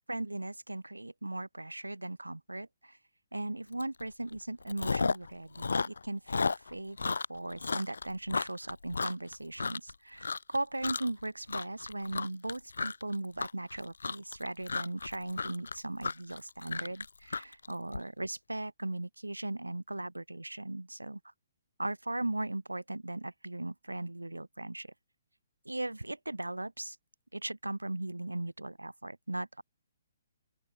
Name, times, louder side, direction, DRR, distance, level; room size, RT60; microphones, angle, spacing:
voice 1, 0.1-3.0 3.3-21.2 21.8-24.9 25.6-27.0 27.3-29.6, right 2 dB, 90° right, 1.7 m, -38 dB
Chewing mastication, 3.8-4.0 4.3-5.3 5.6-9.9 10.2-10.6 10.8-11.2 11.5-18.0, left 4 dB, 70° left, 1.7 m, -33 dB
open air
figure-of-eight pair, 130°, 0 cm